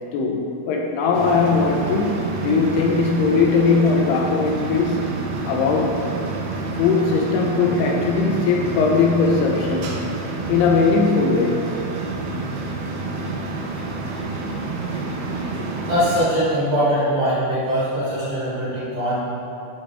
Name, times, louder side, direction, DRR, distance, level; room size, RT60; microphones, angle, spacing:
voice 1, 0.1-5.0 5.5-6.0 6.8-10.1 10.5-11.7 15.6-15.7, left 4 dB, 80° left, 1 dB, 2.4 m, -20 dB
sound 1, 1.1-16.2, right 3 dB, 90° right, 3.0 m, -28 dB
voice 2, 15.8-19.2, equal, 50° right, -12 dB, 2.2 m, -22 dB
8.8 x 4.9 x 3.4 m, 2.7 s
omnidirectional pair, 4.9 m